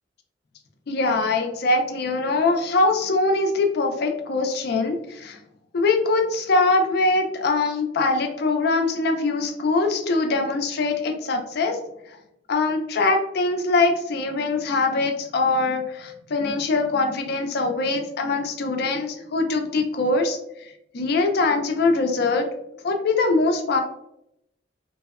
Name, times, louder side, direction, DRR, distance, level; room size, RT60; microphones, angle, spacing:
voice 1, 0.9-5.4 5.7-11.8 12.5-20.4 20.9-22.5 22.8-23.8, left 3 dB, 60° left, 4 dB, 0.4 m, -22 dB
2.6 x 2.1 x 2.3 m, 0.80 s
head